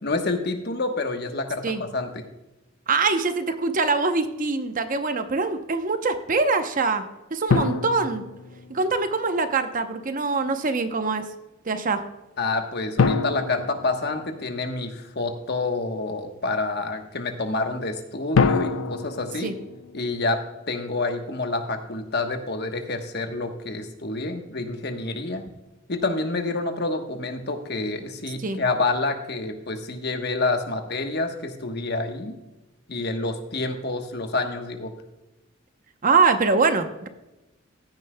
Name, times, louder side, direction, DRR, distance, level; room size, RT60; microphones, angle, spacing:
voice 1, 0.0-2.3 12.4-19.5 19.9-20.4 20.7-25.5 25.9-32.4 32.9-34.9, left 3 dB, 55° left, 6 dB, 1.1 m, -28 dB
voice 2, 2.9-7.0 7.3-8.2 8.7-11.2 11.7-12.0 19.4-19.5 28.4-28.6 36.0-37.1, right 4 dB, 40° right, 8 dB, 0.8 m, -23 dB
sound 1, 7.5-9.1 13.0-14.9 18.3-20.6, left 5 dB, 80° left, 0.5 m, -26 dB
14.5 x 10.0 x 2.2 m, 1.0 s
head